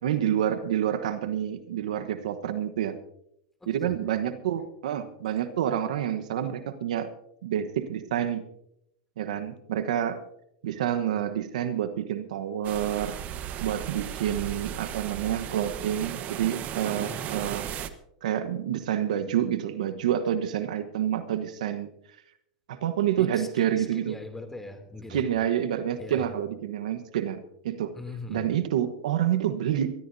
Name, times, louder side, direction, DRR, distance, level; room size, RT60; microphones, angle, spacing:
voice 1, 0.0-3.0 3.7-7.1 7.4-8.4 9.2-10.2 10.6-13.2 13.6-17.7 18.2-21.9 22.7-24.2 25.1-27.9 28.3-29.9, right 10 dB, 80° right, 10 dB, 1.2 m, -28 dB
voice 2, 3.6-4.0 17.0-17.3 23.2-25.2 26.0-26.3 27.9-28.4, left 2 dB, 10° left, 6 dB, 2.9 m, -41 dB
sound 1, 12.6-17.9, right 10 dB, 40° right, 1.2 m, -36 dB
23.0 x 14.0 x 2.8 m, 0.76 s
hypercardioid pair, 115°, 4 cm